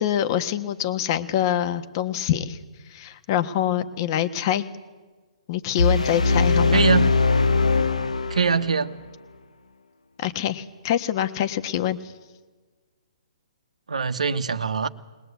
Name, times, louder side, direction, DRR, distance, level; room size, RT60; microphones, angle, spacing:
voice 1, 0.0-2.6 2.9-4.7 5.5-6.8 10.2-12.1, left 11 dB, 40° left, 10 dB, 1.4 m, -25 dB
sound 1, 5.8-8.8, left 3 dB, 85° left, 1.0 m, -21 dB
voice 2, 6.7-7.1 8.3-9.0 13.9-14.9, right 5 dB, 80° right, 9 dB, 1.3 m, -22 dB
21.0 x 20.5 x 8.3 m, 1.4 s
hypercardioid pair, 140°, 4 cm